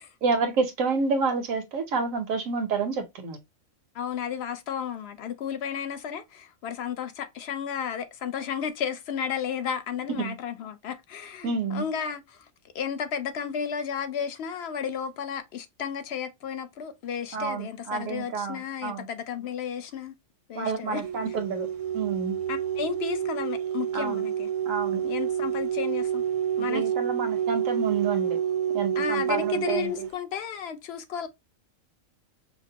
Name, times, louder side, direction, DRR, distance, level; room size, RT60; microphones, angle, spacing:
voice 1, 0.2-3.4 10.1-10.3 11.4-11.8 17.3-19.1 20.5-21.7 21.9-22.3 23.9-24.2 24.7-25.0 26.6-28.4 28.7-29.9, right 4 dB, 90° right, 1.2 m, -29 dB
voice 2, 3.9-12.5 12.7-20.1 20.5-21.0 22.5-24.5 25.0-26.2 26.6-26.9 28.9-31.3, left 8 dB, 65° left, 0.7 m, -33 dB
sound 1, 21.0-30.1, right 9 dB, 50° right, 0.6 m, -28 dB
5.1 x 2.1 x 2.7 m
omnidirectional pair, 1.3 m